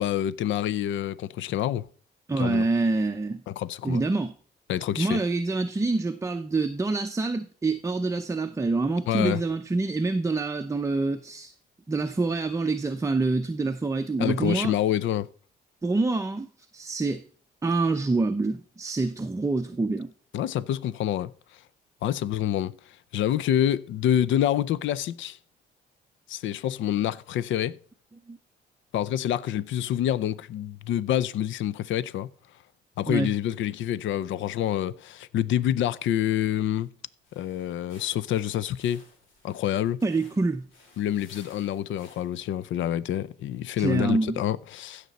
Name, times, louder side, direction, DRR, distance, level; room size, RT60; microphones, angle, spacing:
voice 1, 0.0-1.9 2.4-2.6 3.6-4.0 4.7-5.2 9.1-9.4 14.2-15.3 20.3-21.3 22.0-25.4 26.3-27.8 28.9-32.3 33.0-36.9 37.3-39.0 39.4-40.0 41.0-45.1, left 11 dB, 75° left, 0.5 m, -27 dB
voice 2, 2.3-3.4 3.8-4.3 5.0-11.5 11.9-14.8 15.8-16.5 16.7-17.2 17.6-20.1 28.3-28.4 33.1-33.3 40.0-40.7 43.8-44.4, right 3 dB, 15° right, 0.6 m, -26 dB
sound 1, 37.2-42.5, left 3 dB, 90° left, 3.2 m, -56 dB
16.0 x 6.7 x 4.1 m
cardioid pair, 90°, 20 cm